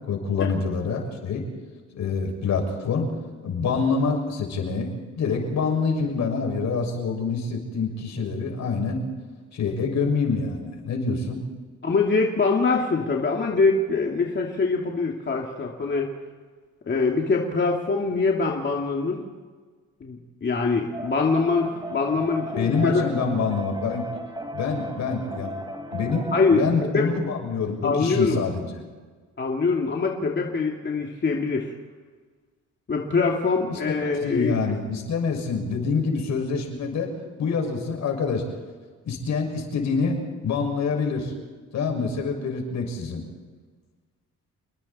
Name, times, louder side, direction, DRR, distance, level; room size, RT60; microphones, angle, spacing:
voice 1, 0.1-1.4 1.9-3.1 3.4-4.9 5.2-9.0 9.5-11.4 22.6-24.0 24.5-25.5 25.9-28.7 33.7-33.8 34.0-37.1 37.4-38.5 39.0-40.2 40.4-41.3 41.7-43.2, left 5 dB, 65° left, 2 dB, 6.5 m, -26 dB
voice 2, 11.8-16.1 16.9-19.2 20.0-23.0 26.3-26.6 26.9-27.1 27.8-28.4 29.4-31.7 32.9-34.5, left 4 dB, 35° left, -1 dB, 2.7 m, -23 dB
sound 1, 20.9-26.6, right 1 dB, 15° right, 4.1 m, -35 dB
29.5 x 20.5 x 4.4 m, 1.4 s
cardioid pair, 90°, 30 cm